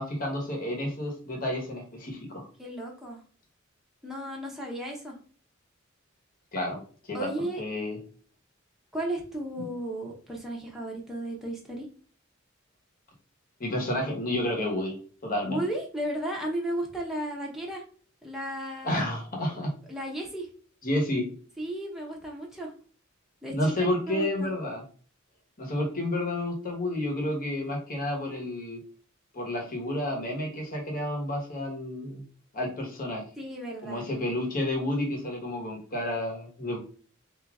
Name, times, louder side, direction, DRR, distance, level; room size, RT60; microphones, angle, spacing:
voice 1, 0.0-2.5 6.5-6.8 7.1-7.3 7.6-8.0 9.6-9.7 13.6-15.0 15.2-15.6 18.8-19.7 20.8-21.3 23.5-24.8 25.6-28.8 29.3-32.3 32.5-33.2 33.8-36.8, left 1 dB, 45° left, 0 dB, 1.3 m, -30 dB
voice 2, 2.6-3.2 4.0-5.2 7.1-7.6 8.9-11.9 15.4-17.8 18.2-19.0 19.9-20.5 21.6-22.7 23.4-24.5 33.4-34.0, right 1 dB, ahead, -2 dB, 0.9 m, -34 dB
3.7 x 2.8 x 3.5 m, 0.42 s
head